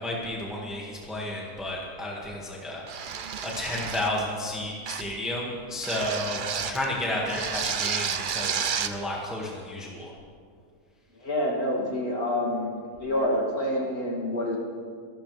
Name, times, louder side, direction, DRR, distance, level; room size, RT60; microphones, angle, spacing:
voice 1, 0.0-10.1, left 1 dB, ahead, -3 dB, 1.9 m, -32 dB
sound 1, 2.9-4.2 4.9-5.2 5.8-6.8 7.3-9.0, right 7 dB, 70° right, 0.4 m, -31 dB
voice 2, 11.1-12.7 13.0-14.6, left 1 dB, 60° left, -3 dB, 3.2 m, -27 dB
24.0 x 13.0 x 3.4 m, 2.1 s
omnidirectional pair, 1.7 m